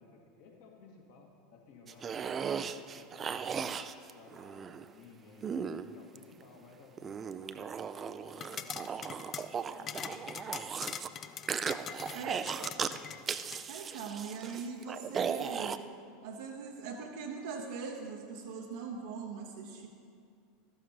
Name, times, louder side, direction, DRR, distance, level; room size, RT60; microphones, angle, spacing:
voice 1, 0.0-3.4 4.1-5.5 5.9-9.4 9.8-10.9 12.1-13.1, left 4 dB, 55° left, 0 dB, 1.9 m, -57 dB
sound 1, 1.9-4.9 5.4-6.4 7.0-11.1 11.5-13.0 13.3-15.8, right 7 dB, 25° right, 0.4 m, -37 dB
sound 2, 8.3-13.6, left 8 dB, 30° left, 0.4 m, -43 dB
voice 2, 12.1-12.5 13.7-15.9 16.2-19.9, right 5 dB, 60° right, 0 dB, 0.8 m, -41 dB
13.5 x 12.0 x 3.0 m, 2.3 s
figure-of-eight pair, 80°, 0 cm